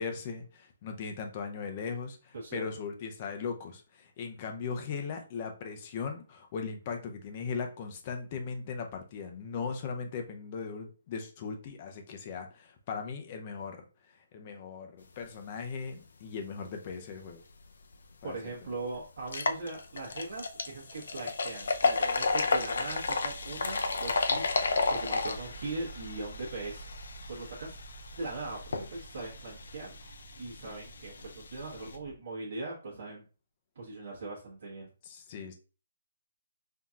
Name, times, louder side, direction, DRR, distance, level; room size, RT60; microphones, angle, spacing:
voice 1, 0.0-13.8 14.3-17.4 18.2-18.4 35.0-35.6, left 5 dB, 25° left, 4 dB, 0.6 m, -38 dB
voice 2, 2.3-2.6 18.2-27.8 28.1-33.2 33.7-34.9, right 2 dB, 55° right, -5 dB, 1.2 m, -40 dB
sound 1, 17.9-18.0 18.5-18.6 19.2-32.0, left 4 dB, 70° left, 0.5 m, -33 dB
sound 2, 21.6-32.2, right 5 dB, 25° right, 0.6 m, -50 dB
5.6 x 2.8 x 2.4 m, 0.35 s
hypercardioid pair, 175°, 0 cm